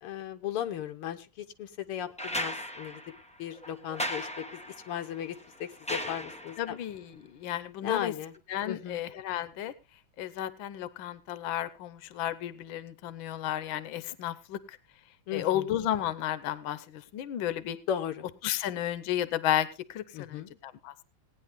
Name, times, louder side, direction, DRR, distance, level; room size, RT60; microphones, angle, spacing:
voice 1, 0.0-3.0 3.4-6.8 7.8-8.3 8.7-9.0 15.3-15.7 17.9-18.3 20.1-20.6, left 10 dB, 90° left, 7 dB, 2.0 m, -36 dB
sound 1, 2.2-6.8 8.3-8.4, left 1 dB, 10° left, 0.3 m, -37 dB
voice 2, 6.6-8.1 8.5-9.7 10.2-14.8 15.3-17.8 18.4-20.9, left 11 dB, 70° left, 14 dB, 1.6 m, -33 dB
18.0 x 9.7 x 3.6 m, 0.28 s
omnidirectional pair, 2.4 m